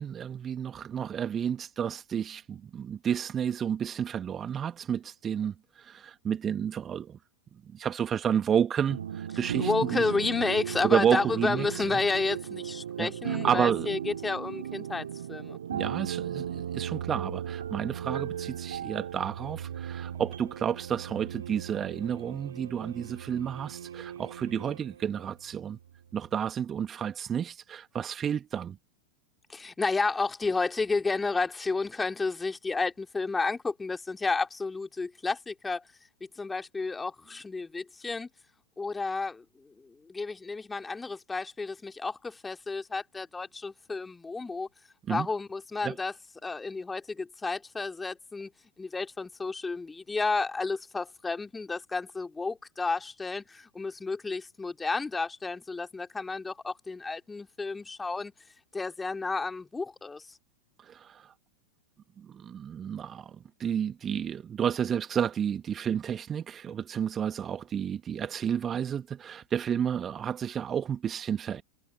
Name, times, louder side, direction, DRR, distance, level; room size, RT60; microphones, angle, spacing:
voice 1, 0.0-7.2 7.7-10.2 10.8-12.0 13.0-14.0 15.7-25.8 26.1-28.8 45.1-45.3 45.8-46.0 60.8-61.3 62.2-71.6, right 8 dB, 25° right, 2.2 m, -31 dB
sound 1, 8.9-25.4, right 9 dB, 65° right, 3.2 m, -37 dB
voice 2, 9.6-15.6 29.5-35.8 36.4-38.3 38.8-39.4 40.1-44.7 45.1-46.1 46.4-48.5 48.8-58.3 58.7-60.2, left 3 dB, 10° left, 2.8 m, -31 dB
figure-of-eight pair, 90°, 0 cm